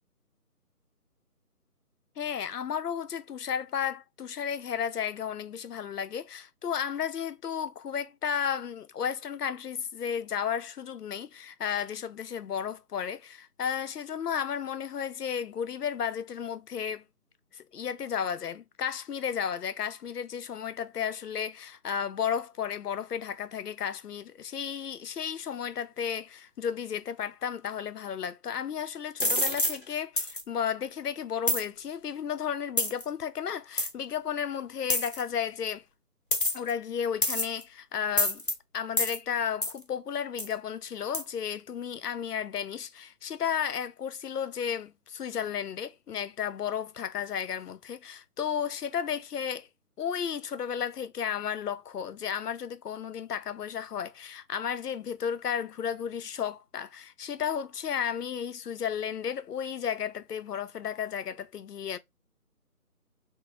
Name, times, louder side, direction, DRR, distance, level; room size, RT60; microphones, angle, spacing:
voice 1, 2.2-17.0 17.5-35.8 36.5-38.4 38.7-49.7 50.0-62.0, left 8 dB, 80° left, 0.7 m, -33 dB
sound 1, 29.2-29.8 30.2-30.4 31.5-31.6 32.8-33.0 33.8-33.9 34.9-35.2 36.3-36.7 37.2-37.6 38.2-38.5 39.0-39.2 39.6-39.8 40.4-40.5 41.1-41.2, left 1 dB, 35° left, 0.6 m, -27 dB
3.0 x 2.6 x 3.4 m
figure-of-eight pair, 165°, 46 cm